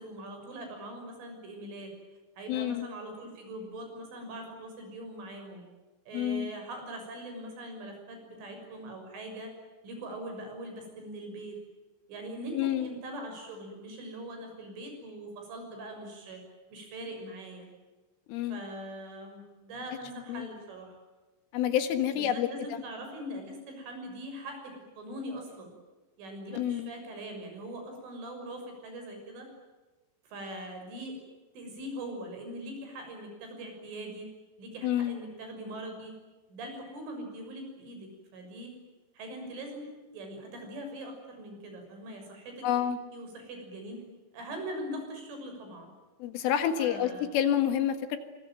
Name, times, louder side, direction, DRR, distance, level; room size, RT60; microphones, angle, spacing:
voice 1, 0.0-1.9 2.4-5.6 6.1-9.5 9.8-11.6 12.1-16.4 16.7-17.7 18.5-21.0 22.1-25.7 26.2-29.5 30.3-31.2 31.6-34.3 34.6-36.1 36.5-38.8 39.2-44.0 44.3-45.9 46.8-47.3, right 1 dB, 70° right, 4 dB, 8.9 m, -42 dB
voice 2, 2.5-2.9 6.1-6.5 12.5-12.9 18.3-18.6 20.3-20.5 21.5-22.5 26.5-26.9 34.8-35.2 42.6-43.0 46.2-48.2, left 10 dB, 75° left, 9 dB, 4.1 m, -28 dB
25.5 x 23.0 x 9.1 m, 1.2 s
omnidirectional pair, 5.9 m